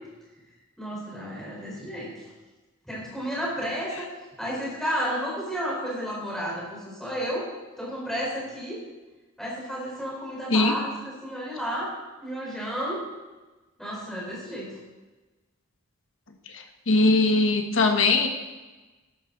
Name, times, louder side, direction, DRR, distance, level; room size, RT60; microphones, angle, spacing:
voice 1, 0.8-2.1 2.9-3.9 4.4-7.4 7.8-8.8 9.4-11.9 12.2-13.0 13.8-14.7, equal, ahead, -5 dB, 4.6 m, -32 dB
voice 2, 16.9-18.3, left 3 dB, 65° left, 5 dB, 1.4 m, -20 dB
13.0 x 11.5 x 4.0 m, 1.2 s
head